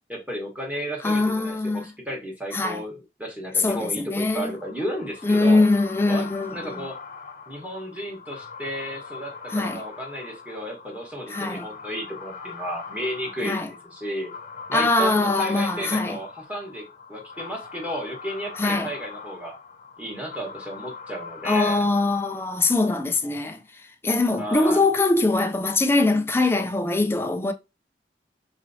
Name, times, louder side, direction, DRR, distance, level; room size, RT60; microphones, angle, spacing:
voice 1, 0.1-5.7 6.1-7.0 7.5-14.3 14.7-19.6 20.0-21.8 24.4-24.8, equal, 10° right, 1.4 m, -33 dB
voice 2, 1.0-1.8 2.5-2.8 3.6-4.5 5.2-6.8 9.5-9.8 11.3-11.6 13.4-13.7 14.7-16.2 18.6-18.9 21.4-23.6 24.0-27.5, left 2 dB, 15° left, 0.4 m, -22 dB
sound 1, 4.4-23.3, left 5 dB, 50° left, 0.9 m, -41 dB
4.0 x 3.0 x 2.7 m
head